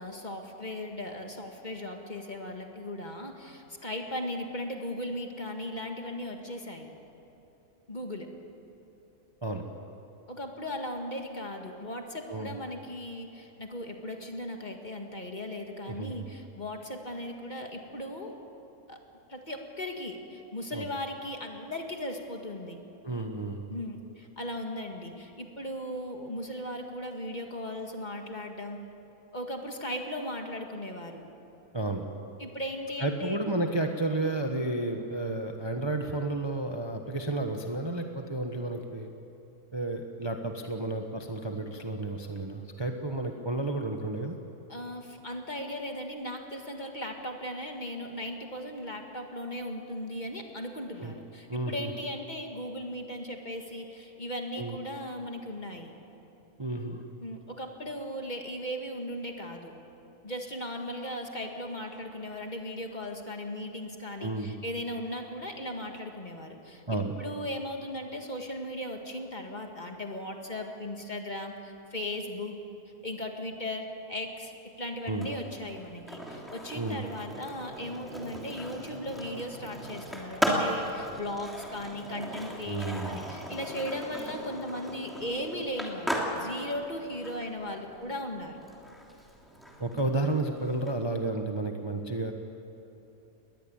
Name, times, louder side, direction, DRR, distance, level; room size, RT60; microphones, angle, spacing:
voice 1, 0.0-6.9 7.9-8.3 10.3-18.3 18.9-19.0 19.3-22.8 23.7-28.8 29.3-31.2 32.4-33.4 44.7-55.9 57.2-59.7 60.2-72.6 73.0-88.6, left 1 dB, 30° left, 3 dB, 2.0 m, -37 dB
voice 2, 15.9-16.3 20.7-20.9 23.0-23.6 31.7-32.1 33.0-39.1 39.7-44.4 51.0-51.1 51.5-51.9 54.6-54.8 56.6-57.0 64.2-64.5 66.9-67.1 75.1-75.3 76.8-77.0 82.7-83.2 89.8-92.3, right 2 dB, 20° right, 4 dB, 1.1 m, -32 dB
Skateboard, 75.1-90.9, equal, ahead, 2.9 m, -37 dB
21.0 x 20.5 x 8.8 m, 2.9 s
omnidirectional pair, 1.6 m